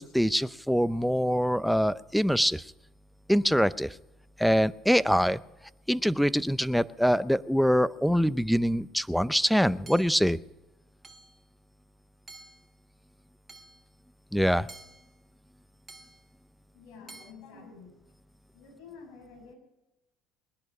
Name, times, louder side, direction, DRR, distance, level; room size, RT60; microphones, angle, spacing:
voice 1, 0.0-2.6 3.3-4.0 4.4-5.4 5.9-10.4 14.3-14.7, equal, ahead, 18 dB, 0.6 m, -24 dB
Hammer / Chink clink, 9.9-10.3 11.0-11.4 12.3-12.7 13.5-13.9 14.7-15.2 15.9-16.3 17.1-17.3, right 3 dB, 25° right, 1.2 m, -50 dB
voice 2, 16.7-17.9 18.5-19.6, left 5 dB, 70° left, 2 dB, 6.2 m, -49 dB
20.5 x 10.5 x 6.0 m, 1.0 s
supercardioid pair, 100°, 0 cm